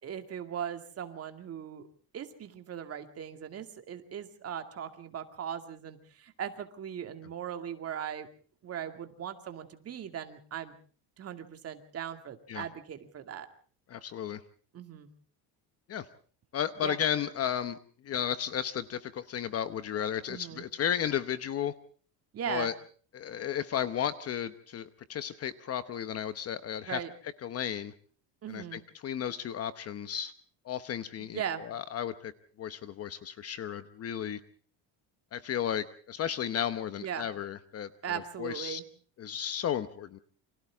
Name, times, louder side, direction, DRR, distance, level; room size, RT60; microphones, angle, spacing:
voice 1, 0.0-1.9 2.1-8.3 8.6-10.7 11.2-13.5 14.7-15.1 16.8-17.0 20.3-20.7 22.3-22.7 26.9-27.1 28.4-28.8 31.2-31.6 37.0-37.3 38.0-38.8, right 9 dB, 35° right, 7 dB, 2.3 m, -39 dB
voice 2, 13.9-14.4 15.9-16.1 16.5-17.8 18.0-21.7 22.5-22.7 23.1-27.0 27.4-27.9 28.5-30.3 30.6-32.3 32.6-34.4 35.3-37.9 38.4-38.8 39.2-40.2, left 9 dB, 35° left, 13 dB, 0.9 m, -34 dB
29.0 x 25.5 x 3.6 m, 0.44 s
cardioid pair, 175°, 44 cm